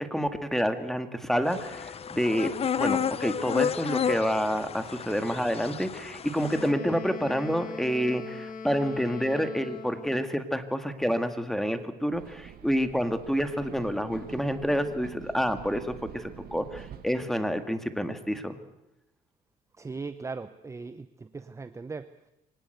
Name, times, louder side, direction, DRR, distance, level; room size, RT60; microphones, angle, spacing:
voice 1, 0.0-2.5 2.8-18.5, equal, ahead, 9 dB, 2.0 m, -28 dB
sound 1, 1.5-6.7, left 7 dB, 35° left, 0.9 m, -31 dB
Wind instrument woodwind instrument, 6.4-10.3, left 4 dB, 55° left, 2.2 m, -40 dB
sound 2, 12.1-17.2, right 10 dB, 65° right, 1.9 m, -46 dB
voice 2, 19.8-22.1, right 4 dB, 15° right, 12 dB, 0.8 m, -39 dB
24.0 x 18.5 x 8.1 m, 0.88 s
cardioid pair, 110°, 17 cm